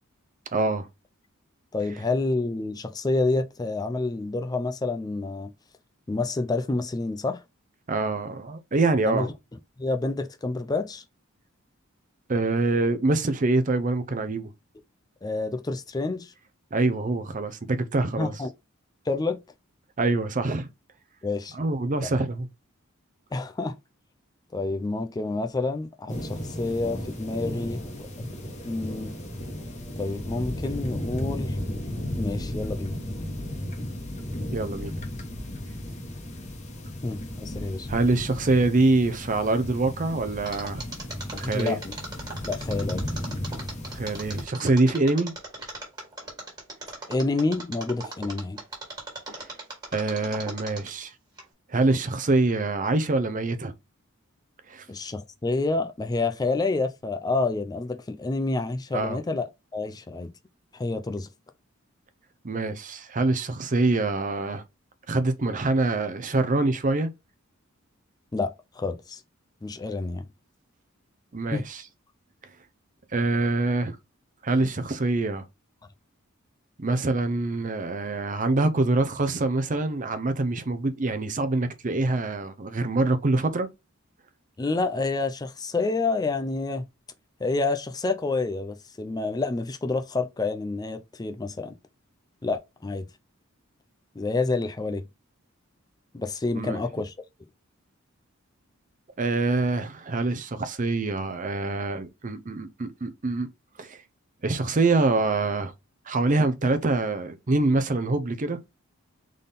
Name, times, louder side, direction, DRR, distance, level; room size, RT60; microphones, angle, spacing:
voice 1, 0.5-0.9 7.9-9.3 12.3-14.5 16.7-18.3 20.0-20.7 21.5-22.5 34.5-34.9 37.9-40.8 41.4-41.8 43.9-45.3 49.3-49.5 49.9-51.1 51.7-53.7 54.7-54.8 58.9-59.2 62.4-64.6 65.1-67.1 71.3-71.8 73.1-74.0 74.4-75.4 76.8-83.7 96.5-96.8 99.2-103.5 103.8-104.0 104.4-105.7 106.1-108.6, right 2 dB, 40° right, 0.6 m, -25 dB
voice 2, 1.7-5.5 6.1-7.4 9.0-9.3 9.8-11.0 15.2-16.3 18.2-18.5 19.1-19.4 21.2-21.5 23.3-23.8 24.5-28.1 28.6-29.1 30.0-31.6 32.2-33.0 37.0-37.9 41.4-41.9 42.5-43.0 47.1-48.6 54.9-59.5 59.7-60.3 60.7-61.3 68.3-69.2 69.6-70.2 71.5-71.6 84.6-86.9 87.4-91.7 92.4-93.1 94.2-95.1 96.1-97.1, left 3 dB, 20° left, 0.4 m, -28 dB
sound 1, 26.1-44.5, left 1 dB, 35° left, 1.1 m, -34 dB
Mechanisms, 40.5-51.0 51.4-51.5, right 2 dB, 20° right, 1.7 m, -38 dB
4.1 x 3.7 x 3.4 m
head